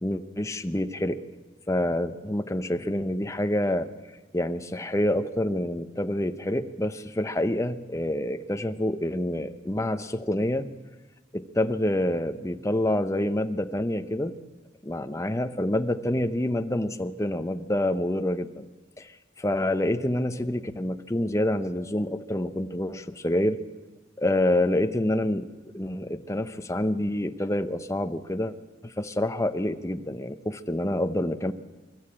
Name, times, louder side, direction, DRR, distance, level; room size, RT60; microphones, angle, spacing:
voice 1, 0.0-1.2 1.7-3.9 4.3-10.7 11.3-14.4 14.8-18.6 19.0-19.1 19.4-23.6 24.2-28.5 28.8-31.5, left 1 dB, 15° left, 10 dB, 0.8 m, -27 dB
24.5 x 13.5 x 8.7 m, 1.2 s
head